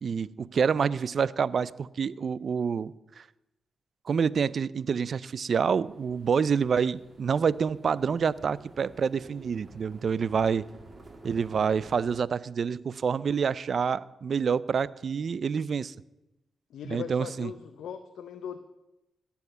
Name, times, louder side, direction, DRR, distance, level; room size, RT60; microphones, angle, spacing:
voice 1, 0.0-3.2 4.1-10.6 11.2-15.9 16.9-17.5, right 6 dB, 60° right, 20 dB, 0.4 m, -27 dB
sound 1, 5.6-12.2, right 2 dB, 40° right, 2.4 m, -51 dB
voice 2, 16.7-18.6, left 8 dB, 80° left, 8 dB, 0.7 m, -39 dB
17.0 x 7.1 x 6.8 m, 0.95 s
cardioid pair, 60°, 0 cm